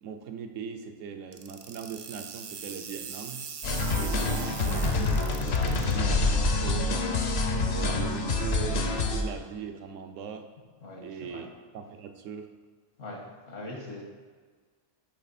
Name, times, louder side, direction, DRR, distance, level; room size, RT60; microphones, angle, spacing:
voice 1, 0.0-3.5 4.0-7.2 7.7-10.5 11.0-11.5 11.7-12.5, right 6 dB, 80° right, 6 dB, 1.0 m, -40 dB
sound 1, 1.3-5.9, right 6 dB, 55° right, 0.6 m, -41 dB
sound 2, 3.6-9.2, left 2 dB, 60° left, 0.9 m, -26 dB
voice 2, 10.8-11.5 13.0-14.0, left 2 dB, 80° left, -1 dB, 1.8 m, -41 dB
9.9 x 3.3 x 4.1 m, 1.5 s
omnidirectional pair, 1.3 m